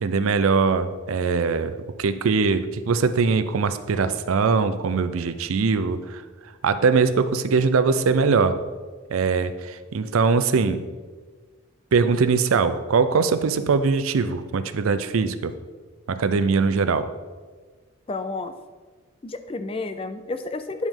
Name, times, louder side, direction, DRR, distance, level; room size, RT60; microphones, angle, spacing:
voice 1, 0.0-6.2 6.6-8.6 9.1-10.8 11.9-15.5 16.1-17.1, right 4 dB, 80° right, 11 dB, 0.4 m, -21 dB
voice 2, 18.1-18.5 19.2-20.9, left 3 dB, 25° left, 9 dB, 0.3 m, -30 dB
9.3 x 5.0 x 3.6 m, 1.4 s
head